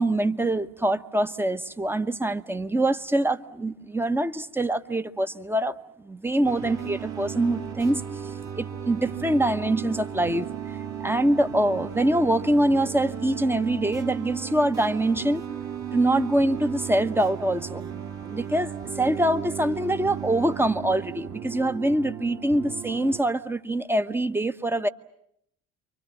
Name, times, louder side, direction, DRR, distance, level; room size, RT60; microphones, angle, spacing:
voice 1, 0.0-8.0 8.6-10.8 11.0-15.4 15.9-17.8 18.3-24.9, right 1 dB, 5° right, 1.1 m, -24 dB
sound 1, 6.4-23.2, right 8 dB, 45° right, 3.2 m, -35 dB
29.0 x 25.0 x 7.5 m
figure-of-eight pair, 60°, 40 cm